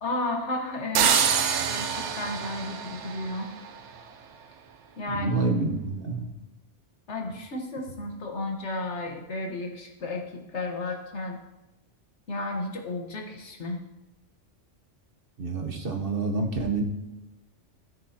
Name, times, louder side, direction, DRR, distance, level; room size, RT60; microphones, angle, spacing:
voice 1, 0.0-3.5 5.0-5.6 7.1-11.4 12.3-13.8, left 2 dB, 70° left, 1 dB, 1.6 m, -33 dB
sound 1, 0.9-3.8, right 7 dB, 75° right, 1.0 m, -26 dB
voice 2, 5.1-6.3 15.4-16.8, right 3 dB, 50° right, 3 dB, 1.2 m, -28 dB
15.0 x 6.7 x 2.9 m, 0.97 s
omnidirectional pair, 1.2 m